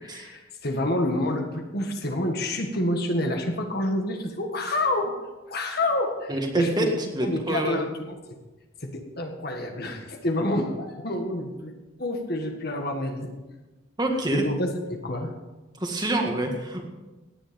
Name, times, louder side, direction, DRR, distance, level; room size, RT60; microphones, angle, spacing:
voice 1, 0.0-5.2 5.5-6.9 7.2-7.9 8.8-11.7 12.0-13.3 14.3-15.3, left 1 dB, 50° left, 4 dB, 1.8 m, -28 dB
voice 2, 6.3-7.8 14.0-14.4 15.8-16.8, right 1 dB, 20° right, 2 dB, 1.8 m, -26 dB
17.5 x 10.0 x 5.3 m, 1.1 s
head